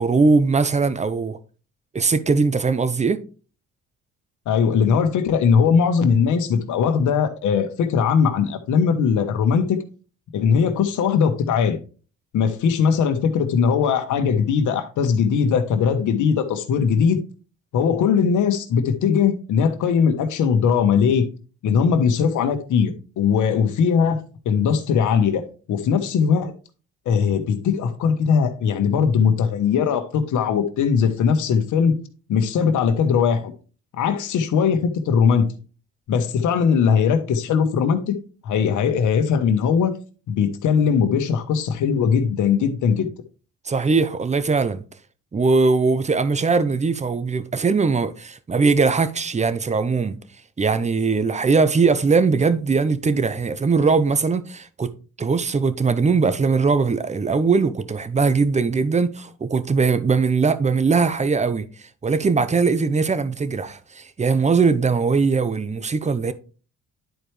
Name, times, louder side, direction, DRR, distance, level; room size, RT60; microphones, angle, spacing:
voice 1, 0.0-1.4 1.9-3.2 43.7-44.8 45.3-50.2 50.6-54.9 55.2-61.7 62.0-66.3, right 4 dB, 25° right, 0.7 m, -20 dB
voice 2, 4.5-9.8 10.3-11.8 12.3-17.2 17.7-21.2 21.6-26.5 27.1-31.9 32.3-33.5 33.9-35.5 36.1-38.2 38.4-39.9 40.3-43.1, left 6 dB, 80° left, 1.3 m, -20 dB
10.0 x 4.5 x 3.3 m
cardioid pair, 90°, 30 cm